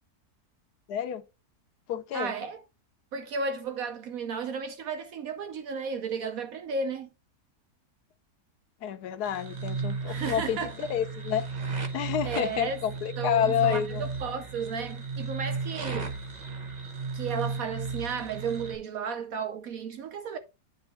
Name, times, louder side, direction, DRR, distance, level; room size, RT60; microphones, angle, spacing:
voice 1, 0.9-1.2 1.9-2.3 8.8-11.5 11.9-14.0, left 9 dB, 85° left, 1.3 m, -29 dB
voice 2, 2.1-2.6 3.1-7.1 10.1-10.7 12.2-12.8 13.2-16.1 17.1-20.4, right 5 dB, 70° right, 1.1 m, -33 dB
sound 1, 9.2-18.8, right 4 dB, 30° right, 1.0 m, -35 dB
9.0 x 3.5 x 4.3 m
omnidirectional pair, 1.7 m